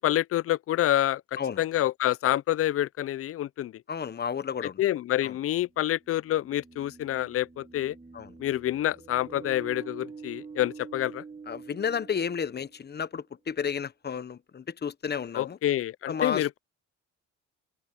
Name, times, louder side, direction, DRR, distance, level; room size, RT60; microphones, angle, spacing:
voice 1, 0.0-3.7 4.8-8.0 8.4-11.2 15.4-16.6, left 13 dB, 50° left, 0.4 m, -27 dB
voice 2, 3.9-4.8 5.2-5.4 8.1-8.3 11.5-15.6 16.1-16.5, left 7 dB, 35° left, 1.0 m, -32 dB
sound 1, 6.1-13.0, right 5 dB, 20° right, 2.1 m, -46 dB
open air
cardioid pair, 90°, 30 cm